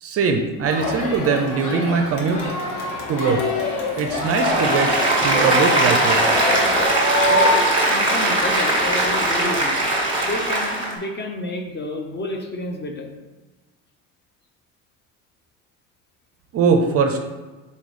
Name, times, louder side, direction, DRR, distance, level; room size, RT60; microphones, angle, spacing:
voice 1, 0.0-2.4 3.1-3.4 4.0-4.9 5.2-6.2 16.5-17.2, right 5 dB, 40° right, 5 dB, 0.5 m, -21 dB
Crowd, 0.6-6.9, left 3 dB, 50° left, 1.1 m, -28 dB
Applause, 4.1-10.9, right 1 dB, 15° right, 1.5 m, -19 dB
voice 2, 7.9-9.8 10.2-13.1, left 2 dB, 30° left, 4 dB, 0.6 m, -30 dB
4.1 x 3.7 x 3.1 m, 1.2 s
supercardioid pair, 100°, 38 cm